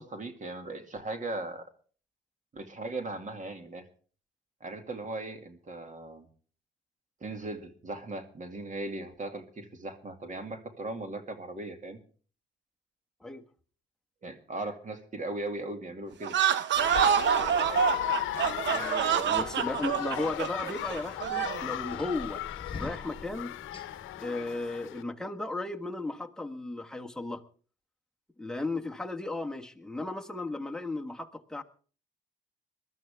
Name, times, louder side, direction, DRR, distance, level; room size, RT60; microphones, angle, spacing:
voice 1, 0.0-1.6 2.5-3.8 4.6-6.3 7.2-12.0 14.2-16.4, right 2 dB, 40° right, 7 dB, 2.3 m, -38 dB
sound 1, 16.2-21.7, right 8 dB, 65° right, 0.9 m, -27 dB
sound 2, 16.7-25.0, left 14 dB, 80° left, 0.7 m, -36 dB
voice 2, 18.6-22.4 22.8-23.5 24.2-27.4 28.4-31.6, left 2 dB, 5° left, 3 dB, 1.3 m, -35 dB
sound 3, 19.0-24.3, left 4 dB, 25° left, 1.3 m, -46 dB
21.0 x 12.5 x 3.5 m, 0.41 s
cardioid pair, 90°, 20 cm